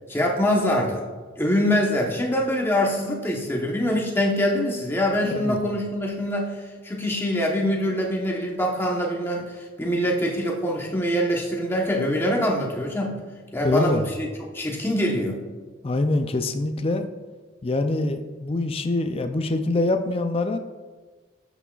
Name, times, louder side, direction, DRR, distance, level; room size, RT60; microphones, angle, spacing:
voice 1, 0.1-1.0 1.4-13.2 13.5-14.3 14.5-15.4, equal, 10° left, -2 dB, 1.0 m, -24 dB
voice 2, 5.2-5.6 13.6-14.1 15.8-17.1 17.6-20.6, left 2 dB, 30° left, 7 dB, 0.4 m, -24 dB
12.5 x 6.1 x 2.4 m, 1.4 s
head